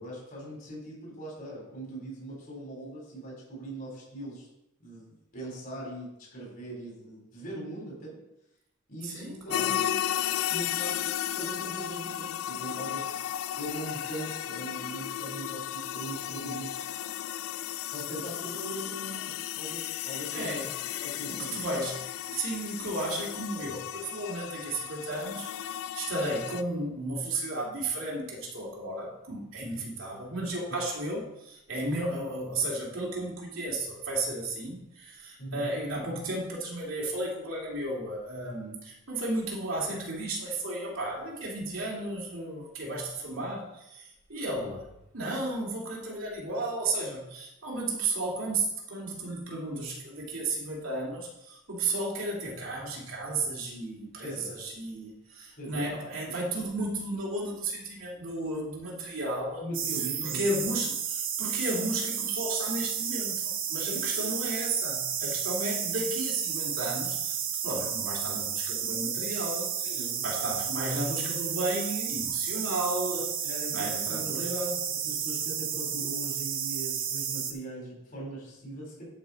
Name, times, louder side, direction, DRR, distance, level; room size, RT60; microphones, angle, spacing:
voice 1, 0.0-4.5 4.8-8.2 8.9-10.1 10.5-13.1 13.5-16.7 17.9-20.6 21.0-21.5 35.4-35.7 54.2-54.5 55.6-55.9 59.6-60.4 63.8-64.3 69.8-70.2 73.4-74.5 74.9-79.0, right 1 dB, 45° left, -3 dB, 3.9 m, -40 dB
voice 2, 9.0-9.8 20.3-20.7 21.2-44.9 45.1-59.7 60.2-67.4 67.6-74.8, right 2 dB, 70° right, -3 dB, 2.7 m, -33 dB
sound 1, 9.5-26.6, left 11 dB, 75° left, 0.3 m, -34 dB
sound 2, 59.7-77.5, right 8 dB, 45° right, 1.0 m, -32 dB
11.5 x 5.6 x 4.2 m, 0.84 s
head